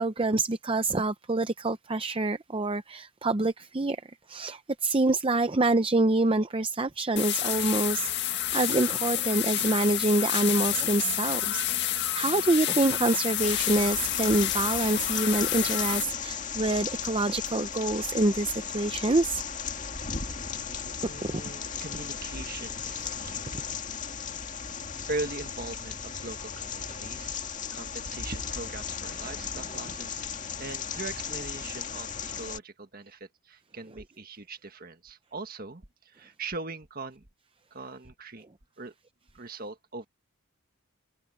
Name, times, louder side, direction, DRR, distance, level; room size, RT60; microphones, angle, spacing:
voice 1, 0.0-4.0 4.3-19.4 21.2-21.4 23.0-23.1, right 2 dB, 25° right, 0.6 m, -26 dB
sound 1, 7.2-16.0, left 12 dB, 50° left, 1.9 m, -29 dB
sound 2, 13.4-32.6, left 6 dB, 35° left, 2.0 m, -36 dB
voice 2, 19.8-23.6 24.6-24.7 25.1-27.4 27.7-37.2 37.7-38.5 38.8-38.9 39.3-40.1, right 3 dB, 40° right, 1.6 m, -40 dB
head